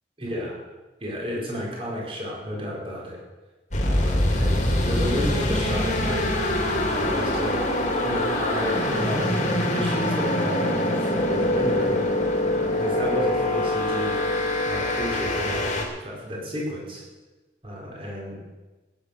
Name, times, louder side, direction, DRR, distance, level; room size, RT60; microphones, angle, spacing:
voice 1, 0.2-0.6 1.0-3.2 3.8-7.6 8.0-12.0 12.6-14.2 14.7-15.6 16.0-17.0 17.6-18.4, equal, 30° right, -2 dB, 4.6 m, -31 dB
sound 1, 3.7-15.8, left 1 dB, 40° left, 2.7 m, -24 dB
16.5 x 10.0 x 6.6 m, 1.2 s
head